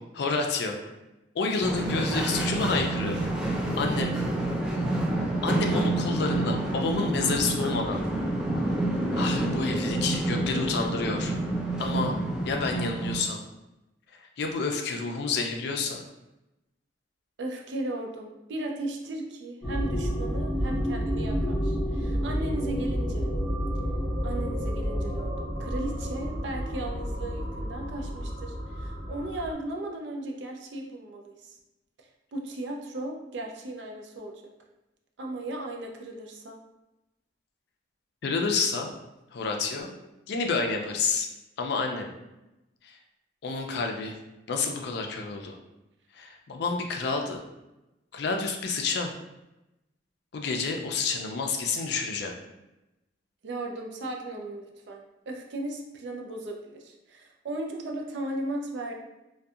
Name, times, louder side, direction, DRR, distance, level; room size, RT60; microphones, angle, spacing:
voice 1, 0.1-0.9 1.3-3.2 3.8-4.1 5.4-8.0 9.1-11.4 11.8-12.2 12.4-13.4 14.4-16.0 38.2-38.9 39.3-39.9 40.3-41.3 41.6-42.1 42.8-43.0 43.4-44.2 44.5-45.6 46.1-47.4 48.1-49.1 50.3-52.3, left 4 dB, 65° left, 3 dB, 0.4 m, -29 dB
sound 1, 1.6-13.2, right 2 dB, 5° right, 0.4 m, -28 dB
voice 2, 17.4-23.3 24.2-31.6 32.3-34.5 35.2-36.6 53.4-58.9, right 1 dB, 75° right, 2 dB, 0.4 m, -36 dB
sound 2, 19.6-29.5, equal, 25° left, 1.0 m, -30 dB
2.6 x 2.2 x 2.3 m, 0.95 s
head